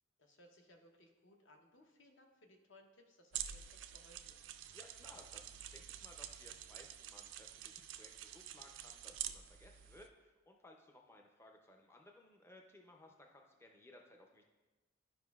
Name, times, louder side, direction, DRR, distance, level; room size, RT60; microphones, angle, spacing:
voice 1, 0.2-4.4, left 1 dB, 65° left, 3 dB, 0.8 m, -64 dB
sound 1, 3.3-10.1, right 10 dB, 65° right, 0.3 m, -48 dB
sound 2, 4.5-9.6, left 2 dB, 85° left, 0.5 m, -75 dB
voice 2, 4.7-14.5, left 1 dB, 10° left, 1 dB, 0.5 m, -61 dB
11.0 x 5.0 x 2.3 m, 1.2 s
head